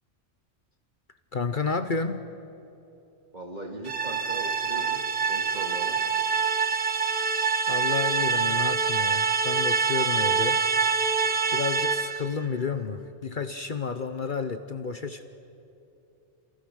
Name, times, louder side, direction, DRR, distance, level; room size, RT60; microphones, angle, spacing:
voice 1, 1.3-2.3 7.7-10.6 11.5-15.2, left 5 dB, 50° left, 9 dB, 1.0 m, -31 dB
voice 2, 3.3-5.0 5.3-6.0, right 1 dB, 40° right, 1 dB, 2.8 m, -39 dB
sound 1, 3.8-12.3, right 5 dB, 55° right, 1.3 m, -25 dB
28.5 x 27.0 x 6.4 m, 2.9 s
omnidirectional pair, 1.2 m